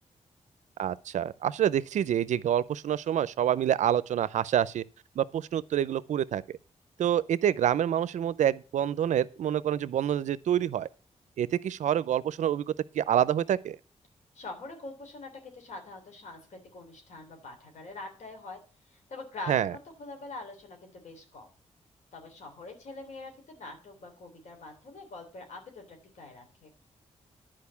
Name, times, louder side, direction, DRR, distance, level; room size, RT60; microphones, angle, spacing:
voice 1, 0.8-4.8 5.2-6.4 7.0-10.9 11.4-12.7 12.9-13.8 19.5-19.7, right 10 dB, 80° right, 0.5 m, -27 dB
voice 2, 14.3-18.6 18.9-21.5 22.1-26.7, left 2 dB, 80° left, 3.4 m, -44 dB
10.5 x 5.0 x 7.0 m
cardioid pair, 90°, 12 cm